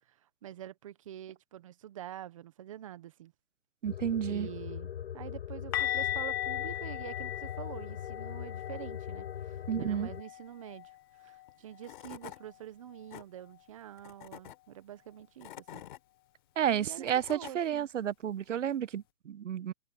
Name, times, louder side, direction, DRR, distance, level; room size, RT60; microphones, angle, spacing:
voice 1, 0.1-3.3 4.2-15.8 16.7-17.9, right 11 dB, 25° right, 0.9 m, -46 dB
sound 1, 3.8-10.2, left 9 dB, 55° left, 4.1 m, -41 dB
voice 2, 3.8-4.5 9.7-10.1 16.6-19.7, right 9 dB, 80° right, 0.9 m, -31 dB
sound 2, 5.7-11.5 11.8-12.0 12.3-12.5 15.7-15.8, left 13 dB, 20° left, 0.8 m, -38 dB
Tools / Wood, 11.5-11.6 11.8-12.4 12.9-13.2 14.0-14.6 15.2-16.0 16.7-17.5, left 12 dB, 40° left, 6.3 m, -47 dB
open air
hypercardioid pair, 165°, 37 cm